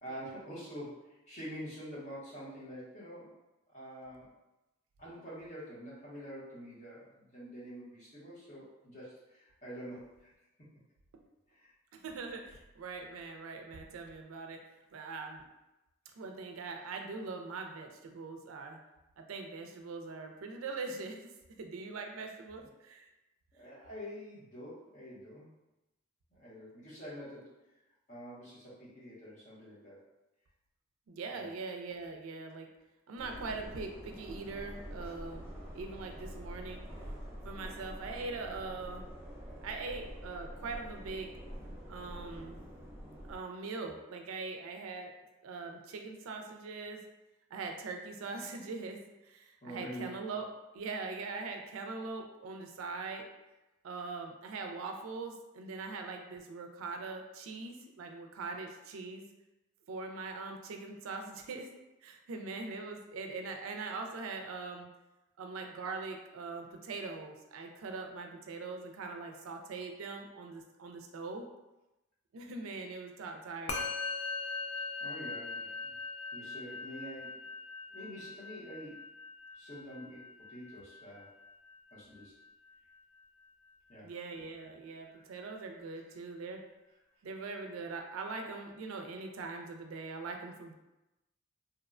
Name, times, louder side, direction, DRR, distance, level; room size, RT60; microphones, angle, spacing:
voice 1, 0.0-3.3 3.7-4.3 5.0-10.3 11.5-11.7 22.6-22.7 23.5-25.5 26.3-27.6 28.1-30.0 31.3-31.5 49.6-50.1 75.0-75.9 76.3-77.5 77.9-79.0 79.5-81.3 81.9-82.3 83.9-84.1 85.1-85.3, equal, 35° left, -8 dB, 0.8 m, -46 dB
voice 2, 11.9-14.6 14.9-15.4 16.2-18.8 19.2-21.3 21.6-23.1 31.1-32.7 33.1-36.8 37.4-39.1 39.6-41.3 41.9-42.6 43.3-45.1 45.4-47.0 47.5-50.5 50.7-53.2 53.8-59.2 59.9-61.7 62.0-64.9 65.4-71.4 72.3-73.8 84.0-86.6 87.2-90.7, right 4 dB, 85° right, 3 dB, 0.4 m, -42 dB
sound 1, 33.1-43.4, equal, 10° right, 0.4 m, -46 dB
Musical instrument, 73.7-83.2, left 4 dB, 55° left, 0.3 m, -41 dB
2.8 x 2.1 x 2.4 m, 0.98 s
head